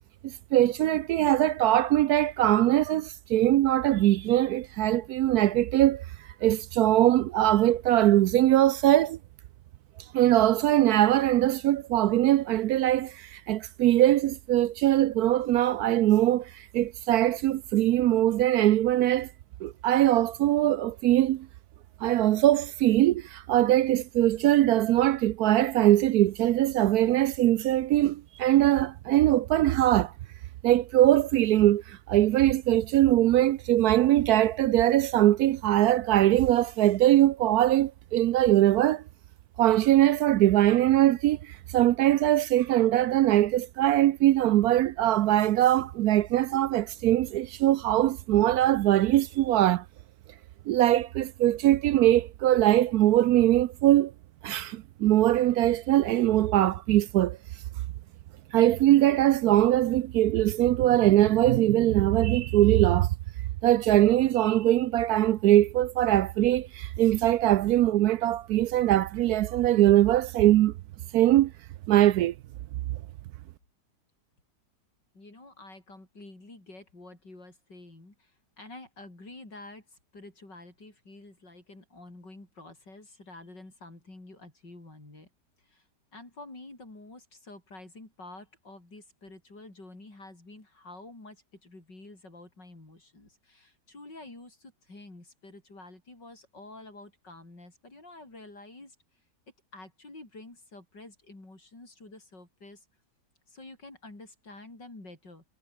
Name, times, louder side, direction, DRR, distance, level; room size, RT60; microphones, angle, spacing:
voice 1, 0.2-6.0 6.4-9.2 10.1-19.3 19.6-21.5 22.0-30.1 30.6-39.0 39.6-49.8 50.7-54.1 54.4-57.4 58.5-63.1 63.6-70.7 71.1-71.5 71.9-72.3, right 13 dB, 70° right, 1.0 m, -22 dB
voice 2, 75.1-85.3 85.6-85.9 86.1-99.0 99.7-102.8 103.5-105.4, left 2 dB, 85° left, 8.1 m, -48 dB
omnidirectional pair, 1.9 m